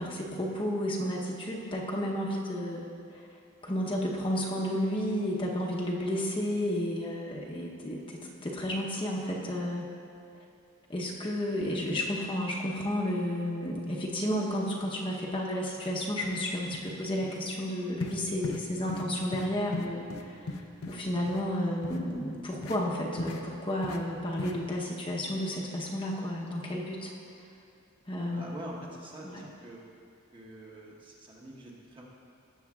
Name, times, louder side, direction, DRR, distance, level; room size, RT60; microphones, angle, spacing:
voice 1, 0.0-2.8 3.6-9.9 10.9-27.1 28.1-28.8 29.2-29.4, equal, 25° left, -3 dB, 0.9 m, -32 dB
sound 1, 15.8-15.9 16.2-16.4 16.7-16.9 17.2-17.4 18.0-18.2 18.4-18.6 18.9-19.1 19.3-19.5 19.7-21.0 21.3-21.4 21.8-22.0 22.6-22.8 23.2-23.4 23.8-24.0 24.4-24.5, left 2 dB, 75° left, 0.7 m, -36 dB
voice 2, 28.3-29.8 30.3-32.0, right 1 dB, 25° right, -3 dB, 1.3 m, -45 dB
17.5 x 7.1 x 2.4 m, 2.5 s
head